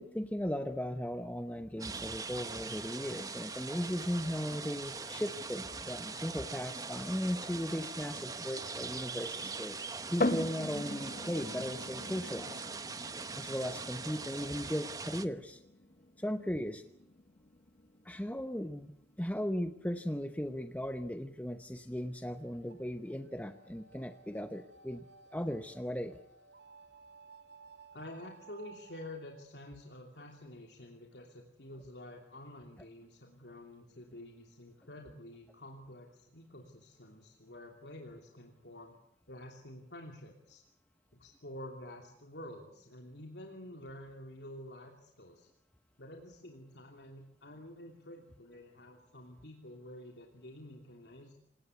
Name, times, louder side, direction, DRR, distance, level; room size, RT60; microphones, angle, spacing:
voice 1, 0.0-9.8 10.1-12.7 13.4-15.6 16.2-16.8 18.0-18.9 19.2-25.0 25.3-26.2, equal, 10° left, 8 dB, 0.9 m, -37 dB
Old water mill Arnhem water flowing away, 1.8-15.3, right 4 dB, 20° right, 1.0 m, -42 dB
sound 1, 10.2-23.7, left 1 dB, 50° left, 1.1 m, -42 dB
sound 2, 21.8-29.4, right 4 dB, 90° right, 2.5 m, -58 dB
voice 2, 27.9-39.0 39.3-40.6 41.1-45.5 46.0-51.3, left 1 dB, 80° left, 2 dB, 3.0 m, -49 dB
27.5 x 18.0 x 8.3 m, 0.76 s
head